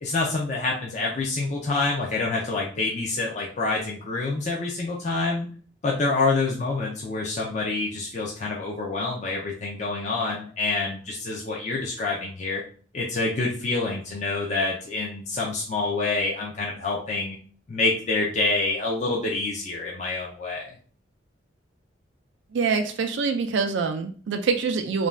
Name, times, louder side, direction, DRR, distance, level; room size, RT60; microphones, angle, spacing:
voice 1, 0.0-5.5 5.8-12.6 12.9-17.4 17.7-20.8, left 3 dB, 40° left, -3 dB, 0.4 m, -27 dB
voice 2, 22.5-25.1, right 5 dB, 70° right, 7 dB, 0.4 m, -25 dB
2.5 x 2.2 x 3.2 m, 0.43 s
head